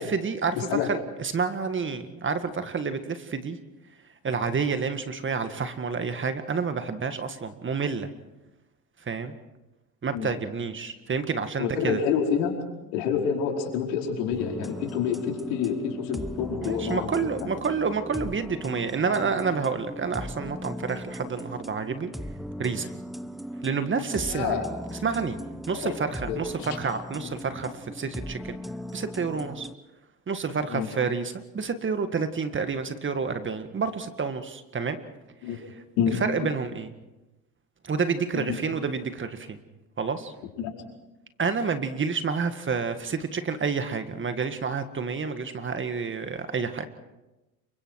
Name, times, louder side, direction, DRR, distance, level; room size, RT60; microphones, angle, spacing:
voice 1, 0.0-3.6 4.2-8.1 9.1-9.3 10.0-12.0 16.6-22.1 22.6-22.9 23.6-24.6 24.9-25.4 25.7-28.6 28.9-29.7 30.3-35.0 36.2-36.9 37.8-39.6 40.0-40.3 41.4-46.9, right 5 dB, 25° right, 9 dB, 1.9 m, -29 dB
voice 2, 0.5-0.9 10.1-10.3 11.6-12.5 12.9-17.1 24.3-24.7 25.7-26.0 26.3-26.7 27.2-27.3 30.7-30.9 35.4-35.6 36.0-36.2 38.3-38.6 40.6-40.7, left 7 dB, 70° left, 1 dB, 5.0 m, -28 dB
sound 1, 14.3-29.7, equal, ahead, 0.9 m, -38 dB
28.5 x 24.0 x 4.8 m, 1.0 s
hypercardioid pair, 85°, 43 cm